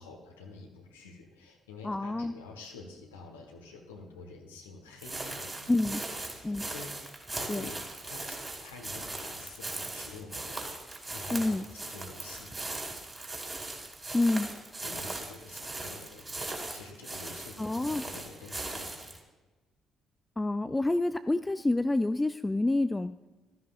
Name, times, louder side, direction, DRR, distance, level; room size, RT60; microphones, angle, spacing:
voice 1, 0.0-5.7 6.4-7.8 8.0-10.7 11.1-12.5 14.8-19.2, left 3 dB, 80° left, 1 dB, 1.5 m, -48 dB
voice 2, 1.8-2.3 5.7-6.0 6.4-6.6 7.5-7.7 11.3-11.6 14.1-14.5 17.6-18.0 20.4-23.1, left 2 dB, 15° left, 11 dB, 0.4 m, -28 dB
sound 1, 5.0-19.2, right 2 dB, 20° right, 2.8 m, -39 dB
15.5 x 13.0 x 2.6 m, 1.2 s
figure-of-eight pair, 45°, 0 cm